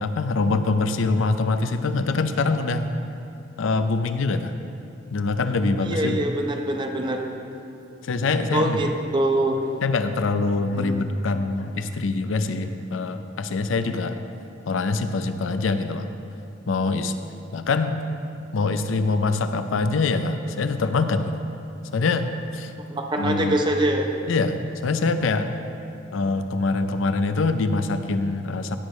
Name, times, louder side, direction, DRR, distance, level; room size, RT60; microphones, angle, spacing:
voice 1, 0.0-2.9 3.6-4.5 5.1-6.3 8.0-8.8 9.8-14.2 14.7-16.1 16.7-17.1 17.5-18.0 18.5-21.4 21.9-22.7 23.2-23.6 24.3-25.5 26.1-28.8, left 3 dB, 80° left, 9 dB, 0.5 m, -24 dB
voice 2, 5.8-7.3 8.5-9.6 10.8-11.1 22.8-24.1, right 1 dB, 25° right, 3 dB, 0.7 m, -24 dB
16.0 x 6.3 x 3.1 m, 2.7 s
head